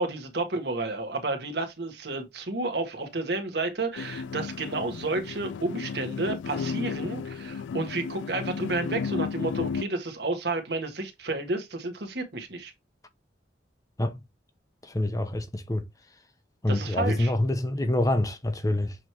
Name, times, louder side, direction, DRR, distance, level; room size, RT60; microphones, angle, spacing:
voice 1, 0.0-12.7 16.7-17.3, right 2 dB, 60° right, 1.6 m, -31 dB
sound 1, 4.0-9.8, left 5 dB, 80° left, 0.3 m, -33 dB
voice 2, 14.8-15.8 16.6-19.0, left 1 dB, 20° left, 0.7 m, -26 dB
7.5 x 3.1 x 4.6 m
head